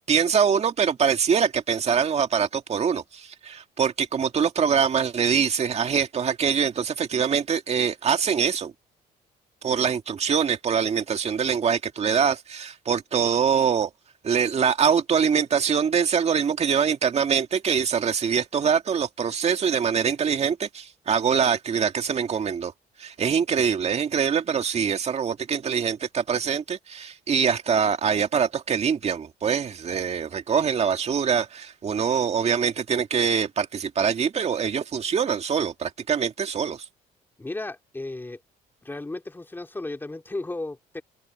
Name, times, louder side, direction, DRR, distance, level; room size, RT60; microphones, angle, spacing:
voice 1, 0.1-8.7 9.6-13.9 14.2-22.7 23.0-36.8, right 7 dB, 40° right, 2.0 m, -24 dB
voice 2, 37.4-38.4 38.8-41.0, left 2 dB, 10° left, 2.8 m, -34 dB
cardioid pair, 110°, 17 cm